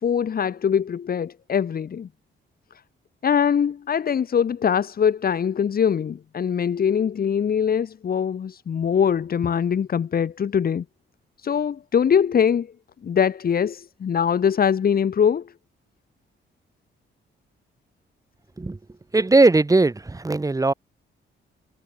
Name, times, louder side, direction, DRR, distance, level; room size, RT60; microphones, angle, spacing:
voice 1, 0.0-2.1 3.2-10.8 11.4-12.7 13.0-15.5, left 7 dB, 50° left, 3.5 m, -22 dB
voice 2, 19.1-20.7, right 3 dB, 15° right, 6.3 m, -18 dB
cardioid pair, 135°, 20 cm